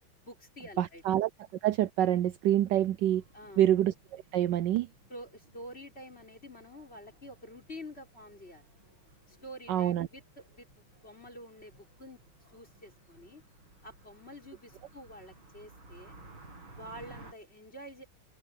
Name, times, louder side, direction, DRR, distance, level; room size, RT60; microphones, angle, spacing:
voice 1, 0.2-1.0 3.3-3.7 5.1-8.7 9.3-12.2 12.5-13.4 13.8-16.2 16.7-18.0, equal, 30° left, 5.5 m, -48 dB
voice 2, 0.8-1.3 1.6-3.2 3.6-4.9 9.7-10.1, right 12 dB, 75° right, 1.1 m, -26 dB
sound 1, 3.1-17.3, right 2 dB, 90° right, 8.5 m, -57 dB
open air
omnidirectional pair, 2.2 m